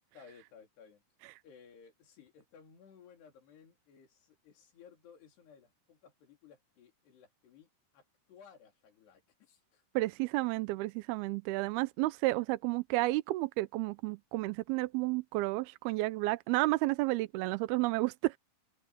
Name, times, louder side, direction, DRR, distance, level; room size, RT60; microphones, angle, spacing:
voice 1, 0.1-1.0 1.4-9.8, left 6 dB, 75° left, 5.7 m, -58 dB
voice 2, 10.0-18.4, right 20 dB, 80° right, 2.4 m, -31 dB
omnidirectional pair, 4.8 m